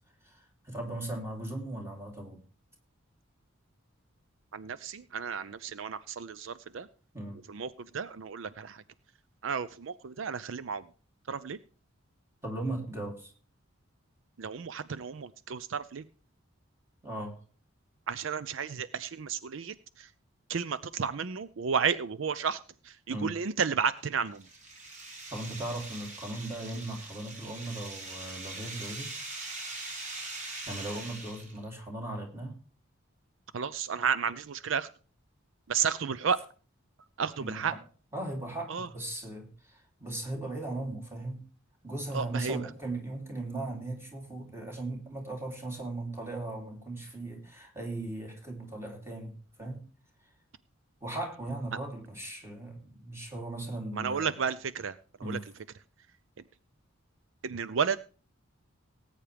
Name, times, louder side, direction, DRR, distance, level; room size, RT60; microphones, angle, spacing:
voice 1, 0.2-2.4 7.1-7.4 12.4-13.3 17.0-17.4 23.1-23.4 25.3-29.1 30.7-32.6 37.4-37.8 38.1-41.4 41.8-49.8 51.0-54.3 55.2-55.5, right 2 dB, 10° right, 1 dB, 3.0 m, -38 dB
voice 2, 4.5-6.9 7.5-8.8 9.4-10.8 11.3-11.6 14.4-16.0 18.1-20.1 20.5-22.6 22.8-24.4 33.5-34.9 35.7-36.4 37.2-37.7 38.7-38.9 42.1-42.6 53.9-54.9 55.3-55.4 57.4-58.0, right 6 dB, 65° right, 15 dB, 0.5 m, -32 dB
sound 1, 24.0-31.6, right 2 dB, 35° right, 3.1 m, -42 dB
19.0 x 8.9 x 3.4 m, 0.38 s
head